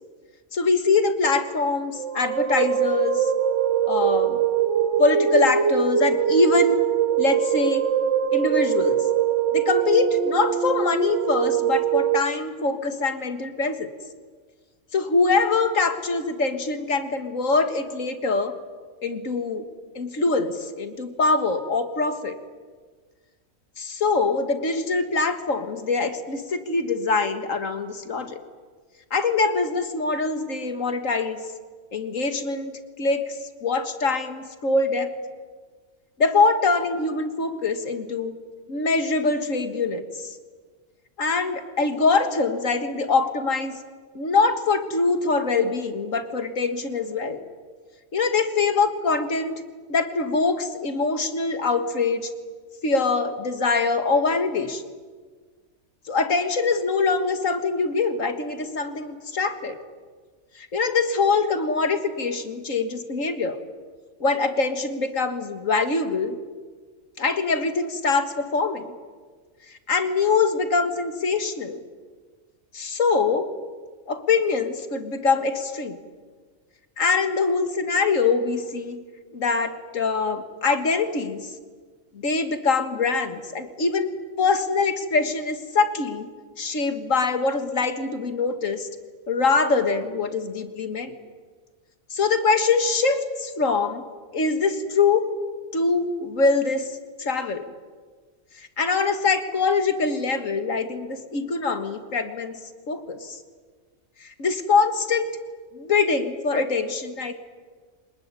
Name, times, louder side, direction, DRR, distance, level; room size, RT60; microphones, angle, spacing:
voice 1, 0.5-3.3 3.9-4.4 5.0-6.9 7.2-7.8 8.3-9.0 9.5-13.9 14.9-18.5 19.0-19.6 19.9-22.4 23.8-28.4 29.1-31.4 31.9-35.1 36.2-38.3 38.7-40.4 41.2-43.8 44.1-47.4 48.1-49.6 49.9-52.3 52.8-54.8 56.1-59.8 60.6-63.6 64.2-66.4 67.2-68.9 69.9-71.8 72.7-73.5 74.1-76.0 77.0-79.0 79.3-81.5 82.2-84.1 84.4-86.3 86.6-88.9 89.3-91.1 92.1-94.0 94.3-95.3 95.7-97.7 98.6-102.6 102.9-103.4 104.2-105.3 105.7-107.3, left 4 dB, 70° left, 8 dB, 2.2 m, -23 dB
sound 1, 2.0-12.2, right 9 dB, 60° right, 1.4 m, -22 dB
25.0 x 20.5 x 9.8 m, 1.5 s
omnidirectional pair, 1.4 m